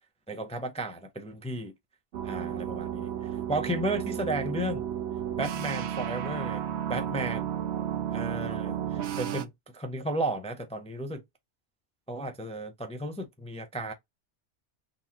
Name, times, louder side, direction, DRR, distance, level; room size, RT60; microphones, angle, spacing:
voice 1, 0.3-1.7 2.2-4.8 5.4-7.5 8.1-11.2 12.1-13.9, right 1 dB, 10° left, 0.3 m, -34 dB
sound 1, 2.1-9.5, right 10 dB, 70° right, 0.8 m, -33 dB
3.8 x 2.7 x 2.9 m
omnidirectional pair, 1.2 m